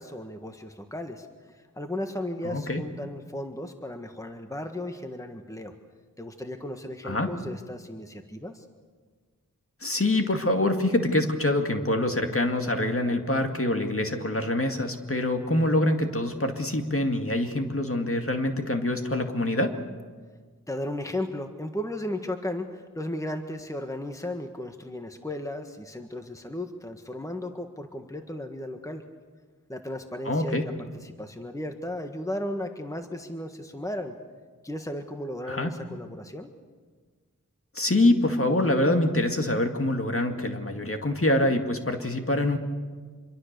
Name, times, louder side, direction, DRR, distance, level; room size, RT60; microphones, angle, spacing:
voice 1, 0.0-5.7 6.2-8.6 20.7-29.0 29.7-34.1 34.6-36.5, left 1 dB, 10° left, 5 dB, 1.6 m, -35 dB
voice 2, 2.4-2.8 7.0-7.3 9.8-19.7 30.3-30.6 35.5-35.7 37.8-42.6, left 1 dB, 40° left, 4 dB, 2.1 m, -25 dB
26.0 x 23.0 x 6.8 m, 1.5 s
wide cardioid pair, 65°, 33 cm